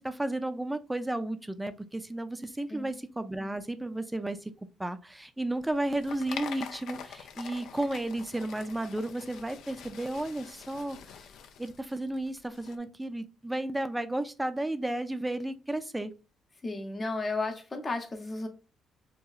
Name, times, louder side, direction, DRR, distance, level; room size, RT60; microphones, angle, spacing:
voice 1, 0.0-4.5 4.8-11.1 11.6-16.1, right 1 dB, 10° right, 0.4 m, -33 dB
sound 1, 5.6-12.8, left 7 dB, 80° left, 0.3 m, -45 dB
voice 2, 16.6-18.5, left 3 dB, 30° left, 0.6 m, -33 dB
2.8 x 2.3 x 2.3 m
cardioid pair, 90°, 0 cm